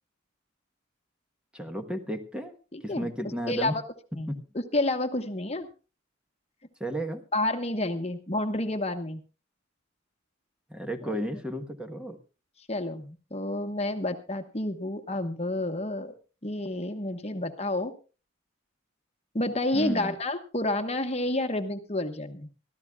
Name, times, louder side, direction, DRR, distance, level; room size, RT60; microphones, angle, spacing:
voice 1, 1.5-2.5 2.8-3.8 4.3-4.4 6.8-7.2 10.7-12.2 19.7-20.1, equal, 5° right, 6 dB, 1.2 m, -33 dB
voice 2, 2.7-3.1 3.5-3.8 4.1-5.7 7.3-9.2 11.0-11.2 12.7-16.1 16.4-17.9 19.3-22.5, left 1 dB, 30° left, 7 dB, 1.2 m, -30 dB
25.0 x 13.5 x 2.4 m, 0.33 s
head